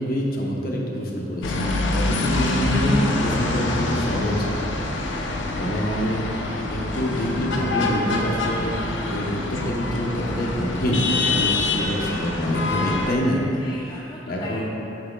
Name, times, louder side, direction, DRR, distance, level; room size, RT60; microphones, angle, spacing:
voice 1, 0.0-4.5 5.5-6.2 6.7-8.7 9.1-13.4 14.3-14.6, equal, 50° left, -2 dB, 0.8 m, -26 dB
sound 1, 1.4-13.1, left 2 dB, 85° left, 0.6 m, -25 dB
voice 2, 4.9-5.4 6.6-6.7 7.1-7.3 11.7-12.2 13.6-14.6, left 2 dB, 25° left, -4 dB, 0.4 m, -42 dB
8.4 x 6.1 x 2.3 m, 2.9 s
head